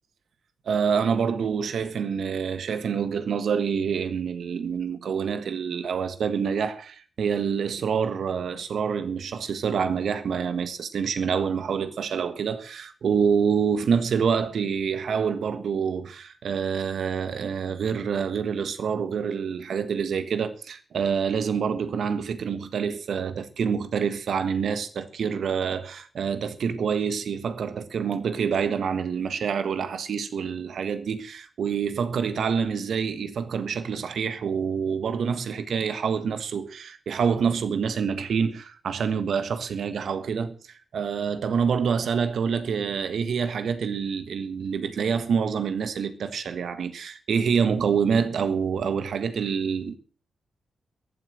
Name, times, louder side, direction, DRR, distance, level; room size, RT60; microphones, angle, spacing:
voice 1, 0.6-40.6 40.9-50.0, right 6 dB, 65° right, 1.5 m, -27 dB
20.0 x 7.7 x 6.4 m
hypercardioid pair, 40°, 0 cm